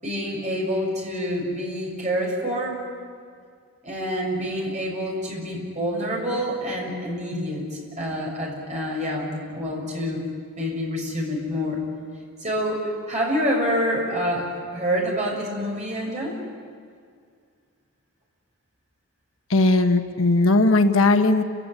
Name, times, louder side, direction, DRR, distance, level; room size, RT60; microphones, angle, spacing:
voice 1, 0.0-2.8 3.8-10.2 10.6-11.8 12.4-12.8 13.1-14.5 14.7-16.3, equal, 30° right, -2 dB, 6.9 m, -27 dB
voice 2, 19.5-21.4, left 2 dB, 65° left, 7 dB, 1.2 m, -18 dB
29.5 x 16.5 x 9.9 m, 2.2 s
head